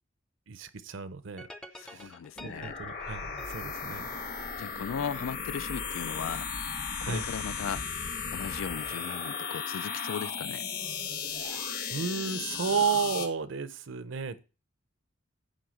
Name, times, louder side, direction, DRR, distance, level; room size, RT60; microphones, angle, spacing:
voice 1, 0.5-1.5 1.8-2.1 2.4-4.2 7.0-7.3 11.3-14.4, right 5 dB, 70° right, 0.7 m, -33 dB
sound 1, 1.4-4.8, equal, 5° left, 0.5 m, -49 dB
voice 2, 1.8-2.7 4.6-6.4 7.0-7.8 8.3-10.6, left 7 dB, 80° left, 0.4 m, -37 dB
sound 2, 2.4-13.3, left 5 dB, 50° left, 1.3 m, -36 dB
9.3 x 3.6 x 6.3 m
head